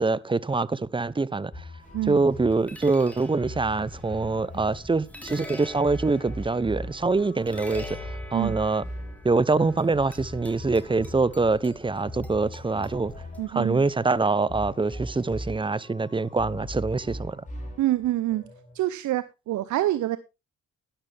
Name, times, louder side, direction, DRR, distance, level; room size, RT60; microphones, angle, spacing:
voice 1, 0.0-1.5 2.1-7.9 8.3-8.8 9.2-13.1 13.5-17.4, right 3 dB, 15° right, 0.7 m, -24 dB
sound 1, 1.5-18.8, left 1 dB, 25° left, 5.8 m, -41 dB
sound 2, 1.8-13.9, left 1 dB, 5° left, 3.7 m, -45 dB
voice 2, 13.4-13.9 17.8-18.4 18.7-20.2, right 14 dB, 75° right, 0.8 m, -26 dB
12.5 x 11.5 x 3.4 m
cardioid pair, 90°, 30 cm